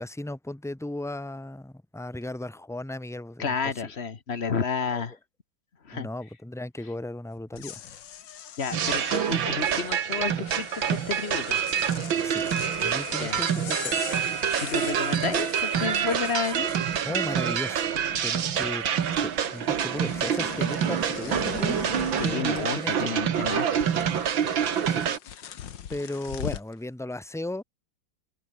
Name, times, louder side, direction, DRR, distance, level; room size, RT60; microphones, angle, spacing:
voice 1, 0.0-3.9 4.9-5.0 5.9-7.8 12.2-12.4 12.8-14.2 17.0-17.9 18.2-18.9 19.2-21.8 22.2-23.2 24.8-25.6 25.9-27.6, left 1 dB, ahead, 1.2 m, -36 dB
voice 2, 3.4-5.1 5.8-6.1 8.6-11.6 13.2-13.4 14.6-16.7 22.2-23.9, left 5 dB, 35° left, 1.4 m, -31 dB
sound 1, 7.4-17.4 17.7-18.4 18.7-26.7, left 9 dB, 70° left, 2.0 m, -41 dB
sound 2, 8.7-25.2, right 8 dB, 85° right, 2.3 m, -27 dB
omnidirectional pair, 2.1 m